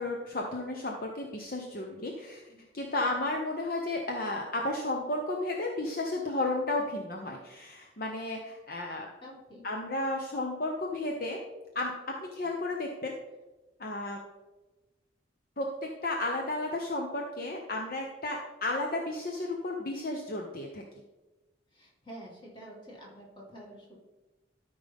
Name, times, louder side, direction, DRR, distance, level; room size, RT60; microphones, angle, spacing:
voice 1, 0.0-2.4 2.7-9.1 9.6-11.4 11.7-11.9 12.3-13.1 13.8-14.2 15.6-20.8, left 2 dB, 50° left, 1 dB, 0.8 m, -33 dB
voice 2, 9.2-9.6 12.4-12.5 21.7-24.0, right 1 dB, 25° left, -3 dB, 2.2 m, -48 dB
12.5 x 5.3 x 3.5 m, 1.1 s
head